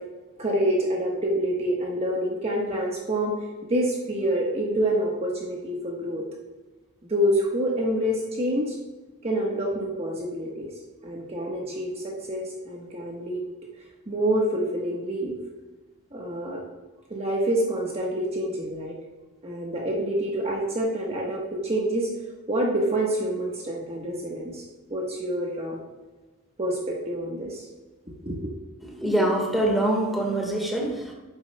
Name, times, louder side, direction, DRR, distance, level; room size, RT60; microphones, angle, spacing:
voice 1, 0.4-3.3 3.7-6.2 7.1-8.8 9.2-10.7 11.0-13.4 14.1-15.4 16.1-16.6 17.1-18.9 19.4-22.1 22.5-24.6 24.9-25.8 26.6-27.6 28.2-28.5, right 1 dB, 30° right, -2 dB, 1.2 m, -27 dB
voice 2, 28.8-31.1, right 1 dB, ahead, -2 dB, 1.5 m, -24 dB
10.0 x 7.6 x 2.2 m, 1.3 s
head